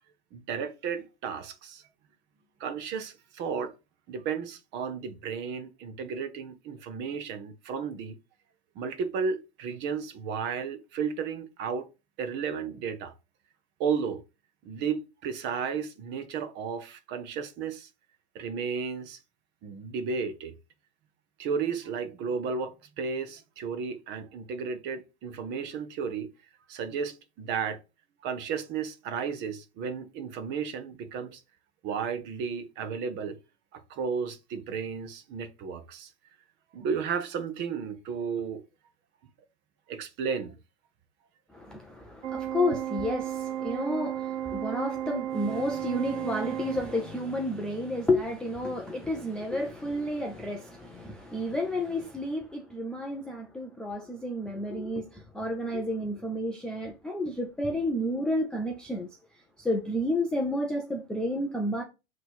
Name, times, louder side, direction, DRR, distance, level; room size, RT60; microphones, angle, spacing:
voice 1, 0.3-1.8 2.6-3.7 4.1-8.2 8.7-11.9 12.2-13.1 13.8-14.2 14.6-17.9 18.3-19.2 19.6-20.5 21.4-26.3 26.7-27.8 28.2-31.4 31.8-33.4 33.7-36.1 36.7-38.6 39.9-40.6, right 6 dB, 35° right, 1.0 m, -33 dB
voice 2, 41.5-59.1 59.6-61.8, left 1 dB, 5° left, 0.4 m, -31 dB
Organ, 42.2-47.3, right 11 dB, 85° right, 0.9 m, -34 dB
7.7 x 3.2 x 4.4 m
hypercardioid pair, 140°, 33 cm